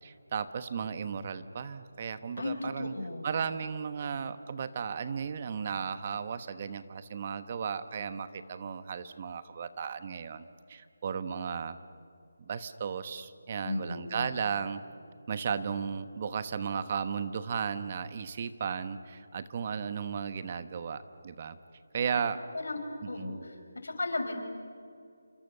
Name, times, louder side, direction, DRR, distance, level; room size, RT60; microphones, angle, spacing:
voice 1, 0.0-2.9 3.2-11.8 12.5-14.8 15.3-21.6 21.9-22.4 23.0-23.4, right 6 dB, 35° right, 12 dB, 1.1 m, -35 dB
voice 2, 2.4-3.3 13.6-14.2 22.5-22.8 23.1-24.4, left 2 dB, 80° left, 5 dB, 5.4 m, -35 dB
28.5 x 26.0 x 6.8 m, 2.4 s
figure-of-eight pair, 165°, 0 cm